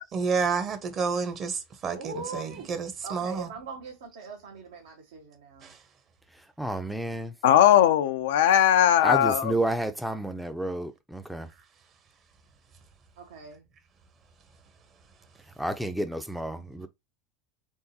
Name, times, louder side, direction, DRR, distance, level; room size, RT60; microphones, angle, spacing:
voice 1, 0.1-3.5 5.6-5.8, right 5 dB, 40° right, 1.0 m, -30 dB
voice 2, 1.9-2.7 3.0-5.7 13.2-13.7, right 3 dB, 75° right, 1.2 m, -41 dB
voice 3, 6.6-7.3 9.0-11.5 15.6-16.9, right 1 dB, 5° right, 0.5 m, -30 dB
voice 4, 7.4-9.5, left 10 dB, 70° left, 0.4 m, -19 dB
3.8 x 3.5 x 2.7 m
hypercardioid pair, 85°, 0 cm